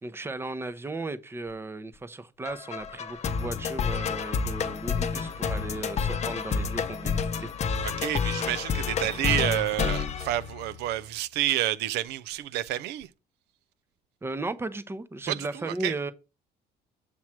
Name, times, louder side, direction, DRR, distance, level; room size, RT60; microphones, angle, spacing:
voice 1, 0.0-7.5 14.2-16.1, right 2 dB, 15° right, 0.6 m, -36 dB
sound 1, 2.5-11.0, left 6 dB, 40° left, 0.6 m, -30 dB
voice 2, 7.8-13.1 15.3-15.9, right 13 dB, 85° right, 0.4 m, -29 dB
7.4 x 3.1 x 5.8 m
cardioid pair, 110°, 17 cm